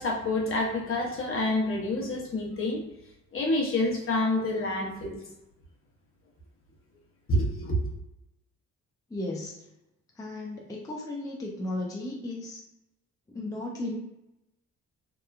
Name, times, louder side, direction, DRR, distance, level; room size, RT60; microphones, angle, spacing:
voice 1, 0.0-2.8 3.3-5.2 7.3-7.8, left 1 dB, 45° left, -2 dB, 0.8 m, -28 dB
voice 2, 9.1-9.6 10.2-12.6 13.3-14.0, left 2 dB, 10° left, -2 dB, 0.4 m, -35 dB
2.9 x 2.1 x 2.3 m, 0.90 s
cardioid pair, 90°, 30 cm